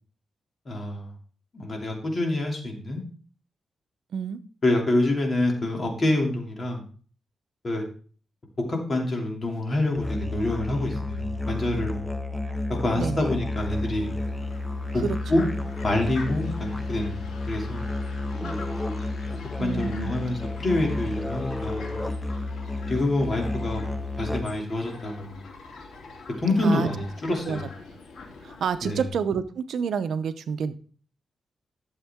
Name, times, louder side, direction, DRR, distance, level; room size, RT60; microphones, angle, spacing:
voice 1, 0.7-1.1 1.5-3.0 4.6-6.8 7.6-7.8 8.7-11.9 12.8-14.1 14.9-15.0 15.3-15.4 15.8-17.8 19.6-21.9 22.9-23.9 24.2-25.4 26.4-27.7 28.8-29.0, left 2 dB, 35° left, 0 dB, 2.8 m, -26 dB
Musical instrument, 9.9-24.7, left 2 dB, 10° left, 0.7 m, -31 dB
voice 2, 13.0-13.3 15.0-15.5 18.4-18.8 19.6-20.1 26.6-26.9 27.5-27.6 28.4-30.7, right 6 dB, 80° right, 11 dB, 0.7 m, -29 dB
Fowl, 13.6-29.1, left 3 dB, 75° left, 2.7 m, -45 dB
12.0 x 7.3 x 3.6 m, 0.42 s
wide cardioid pair, 120°, 0 cm